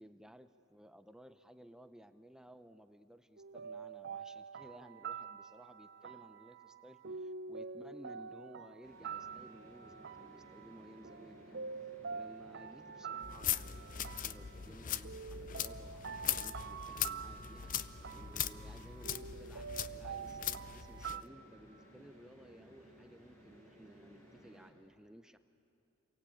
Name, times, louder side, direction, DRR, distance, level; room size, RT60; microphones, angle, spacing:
voice 1, 0.0-17.7 18.1-25.4, equal, 5° right, 9 dB, 0.6 m, -57 dB
sound 1, 3.4-21.2, right 6 dB, 55° right, 0.6 m, -47 dB
sound 2, 8.8-24.7, right 1 dB, 15° left, 5.4 m, -59 dB
sound 3, 13.2-21.2, left 10 dB, 40° left, 0.6 m, -40 dB
29.5 x 23.0 x 8.6 m, 2.6 s
head